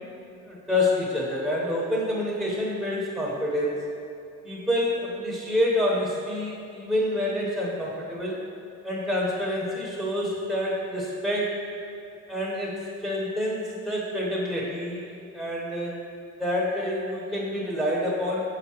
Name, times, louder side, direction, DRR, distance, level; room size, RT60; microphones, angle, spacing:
voice 1, 0.4-3.9 4.4-8.4 8.8-11.6 12.3-15.9 16.4-18.4, left 1 dB, 5° right, -6 dB, 1.0 m, -27 dB
6.6 x 4.8 x 3.0 m, 2.6 s
cardioid pair, 90°, 30 cm